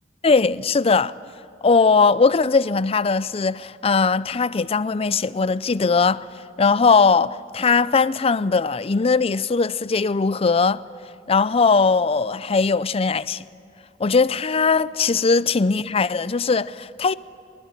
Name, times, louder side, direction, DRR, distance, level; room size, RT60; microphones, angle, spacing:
voice 1, 0.2-1.1 1.6-6.3 6.6-10.8 11.3-13.5 14.0-17.1, left 4 dB, 35° left, 0.5 m, -19 dB
25.0 x 20.0 x 9.0 m
head